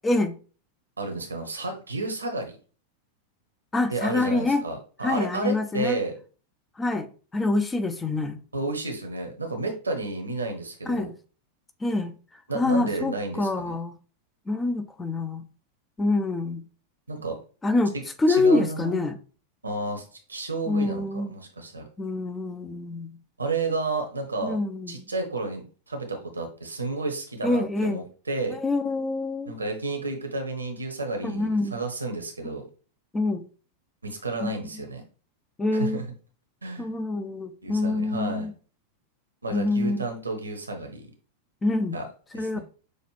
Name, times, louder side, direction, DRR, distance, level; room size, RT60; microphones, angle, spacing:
voice 1, 0.0-0.4 3.7-4.6 5.0-6.0 6.8-8.4 10.9-11.1 11.8-12.1 12.5-13.9 14.5-15.4 16.0-16.6 17.6-17.9 18.2-19.2 20.7-21.3 22.0-23.1 24.4-25.0 27.4-28.0 28.5-29.5 31.2-31.8 33.1-33.4 34.4-34.5 35.6-36.0 36.8-38.5 39.5-40.1 41.6-42.0 42.3-42.6, left 2 dB, 15° left, 0.6 m, -26 dB
voice 2, 1.0-2.6 3.9-6.2 8.5-11.1 12.5-13.7 17.1-17.4 18.3-19.0 19.6-20.0 20.3-21.9 23.4-24.6 24.9-28.6 29.5-32.6 34.0-35.0 35.7-36.0 36.6-36.9 37.6-38.5 39.4-41.1 41.9-42.1 42.3-42.6, right 2 dB, 80° right, 1.0 m, -31 dB
6.4 x 2.5 x 3.2 m
figure-of-eight pair, 90°, 0 cm